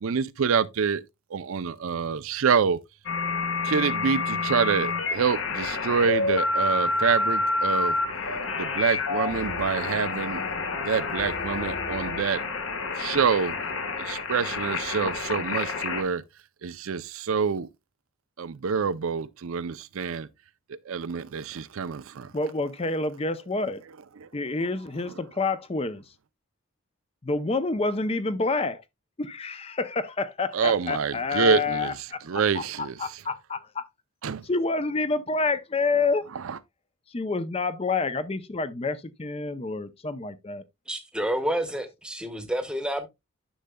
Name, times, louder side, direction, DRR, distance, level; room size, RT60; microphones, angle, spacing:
voice 1, 0.0-1.0 1.3-2.8 3.6-8.0 8.6-10.4 10.8-12.4 13.0-13.5 14.0-16.2 16.6-17.7 18.4-20.3 20.7-22.3 24.2-24.3 30.5-31.9 32.3-32.9 34.2-34.4 36.4-36.6, right 6 dB, 70° right, 0.5 m, -26 dB
sound 1, 3.1-16.0, left 3 dB, 65° left, 1.5 m, -28 dB
voice 2, 22.3-23.8 24.3-26.0 27.2-28.8 29.2-33.8 34.5-36.2 37.1-40.6, left 3 dB, 25° left, 0.5 m, -28 dB
voice 3, 40.9-43.1, right 1 dB, 5° right, 1.0 m, -29 dB
10.0 x 6.5 x 2.2 m
head